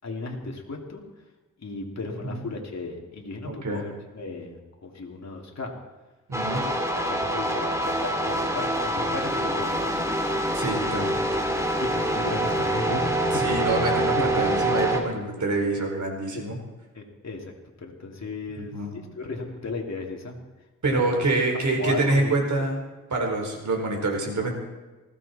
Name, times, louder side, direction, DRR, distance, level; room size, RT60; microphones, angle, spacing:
voice 1, 0.0-1.0 1.6-5.7 6.5-6.7 7.1-10.1 11.8-13.0 13.3-13.6 14.1-14.5 16.3-16.5 16.9-17.5 17.8-20.4 20.9-21.2 21.7-22.3, left 3 dB, 55° left, 0 dB, 3.0 m, -35 dB
voice 2, 3.4-3.8 6.3-6.6 10.5-11.2 13.3-16.6 18.6-18.9 20.8-22.8 23.1-24.5, right 2 dB, 65° right, 2 dB, 4.4 m, -26 dB
sound 1, 6.3-15.0, right 1 dB, 10° right, 2.5 m, -25 dB
19.5 x 16.0 x 4.3 m, 1.2 s
wide cardioid pair, 100°, 32 cm